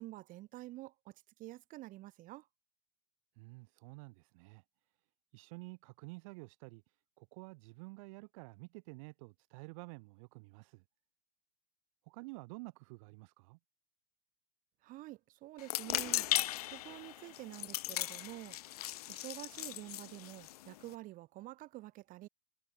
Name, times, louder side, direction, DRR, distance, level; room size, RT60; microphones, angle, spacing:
voice 1, 0.0-2.5 14.8-18.6 19.1-22.3, right 17 dB, 45° right, 2.3 m, -48 dB
voice 2, 3.3-4.6 5.3-10.8 12.0-13.6, right 28 dB, 60° right, 1.4 m, -50 dB
sound 1, 15.6-20.9, left 15 dB, 80° left, 0.6 m, -38 dB
hypercardioid pair, 110°, 19 cm